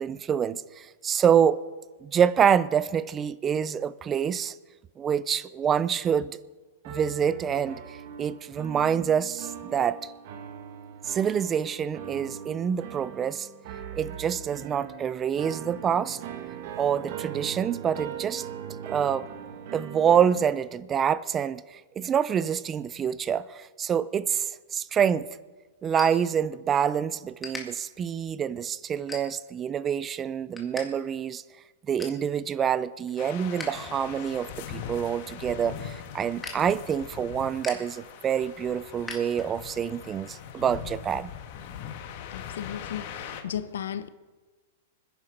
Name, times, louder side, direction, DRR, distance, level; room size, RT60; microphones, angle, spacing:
voice 1, 0.0-1.6 2.0-4.6 5.0-6.4 6.9-10.0 11.0-13.5 13.9-16.2 16.8-18.5 18.9-19.2 19.7-25.3 25.8-31.4 31.9-41.3, right 8 dB, 20° right, 0.5 m, -26 dB
sound 1, 6.8-20.6, right 9 dB, 50° right, 1.8 m, -40 dB
sound 2, 24.8-26.9 27.2-27.6 28.2-28.4 28.9-29.6 30.0-30.9 31.1-31.2 31.6-32.2 32.7-33.7 34.0-39.8, left 3 dB, 5° left, 2.1 m, -43 dB
sound 3, 33.2-43.4, left 9 dB, 45° left, 1.7 m, -41 dB
voice 2, 42.3-44.1, left 9 dB, 80° left, 0.9 m, -35 dB
24.5 x 10.5 x 5.1 m
hypercardioid pair, 155°, 0 cm